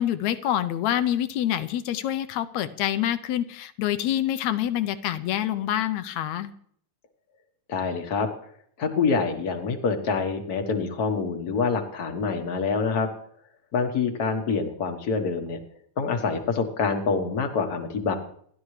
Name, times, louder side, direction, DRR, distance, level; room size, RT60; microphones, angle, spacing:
voice 1, 0.0-6.5, left 11 dB, 75° left, 11 dB, 1.9 m, -26 dB
voice 2, 7.7-8.3 8.8-13.1 13.7-15.6 16.0-18.1, left 5 dB, 45° left, 5 dB, 1.3 m, -26 dB
28.5 x 11.5 x 3.3 m, 0.65 s
omnidirectional pair, 3.5 m